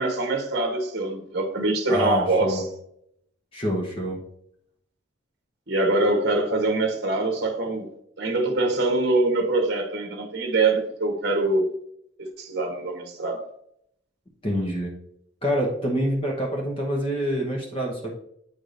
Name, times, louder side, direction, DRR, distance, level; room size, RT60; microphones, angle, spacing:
voice 1, 0.0-2.6 5.7-7.9 8.2-11.6 12.2-13.5, right 2 dB, 55° right, 1.0 m, -24 dB
voice 2, 1.9-2.6 3.5-4.2 14.4-14.9 15.4-18.1, equal, 25° left, 1.0 m, -26 dB
8.3 x 4.8 x 2.6 m
head